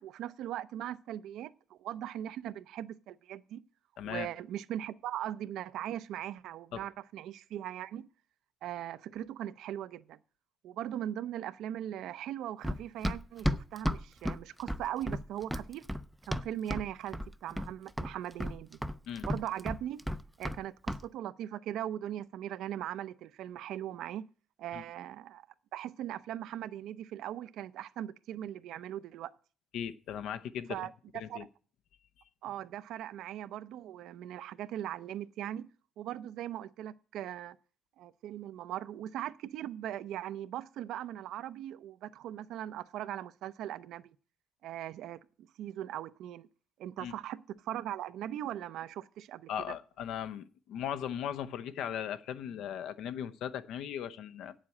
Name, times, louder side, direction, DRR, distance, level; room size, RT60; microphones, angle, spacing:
voice 1, 0.0-3.6 4.0-8.1 8.6-10.2 10.6-15.9 16.3-18.8 19.3-20.0 20.4-24.2 24.6-25.5 25.7-29.3 30.7-30.9 31.3-31.5 32.4-35.7 36.0-37.6 38.0-44.1 44.6-46.5 46.8-49.8, right 11 dB, 75° right, 0.6 m, -39 dB
voice 2, 4.0-4.3 6.7-6.8 19.1-19.3 24.7-24.8 29.7-31.5 47.0-47.1 49.5-54.5, left 9 dB, 75° left, 0.7 m, -38 dB
Run, 12.6-16.9 17.1-17.7 18.0-20.6 20.9-21.0, equal, ahead, 0.4 m, -34 dB
8.5 x 7.4 x 8.4 m
cardioid pair, 145°, 0 cm